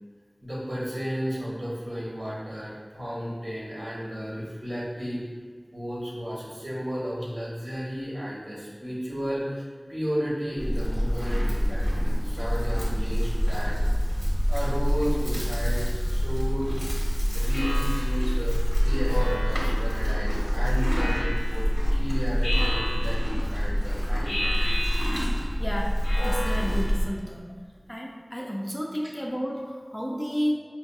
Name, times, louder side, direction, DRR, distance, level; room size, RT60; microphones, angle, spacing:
voice 1, 0.4-5.2 5.7-9.6 9.9-13.7 14.5-16.7 17.3-24.6, equal, 65° right, -7 dB, 1.3 m, -33 dB
Livestock farm animals working animals, 10.6-27.1, equal, 45° right, 1.2 m, -25 dB
Speech synthesizer, 17.5-18.3 19.1-19.9 20.9-21.7 22.4-23.4 24.2-25.5 26.0-27.1, left 1 dB, 85° left, 0.4 m, -33 dB
voice 2, 25.6-27.5 27.9-30.5, equal, 15° left, -1 dB, 0.5 m, -31 dB
5.5 x 2.6 x 2.3 m, 1.5 s
wide cardioid pair, 40°, 0 cm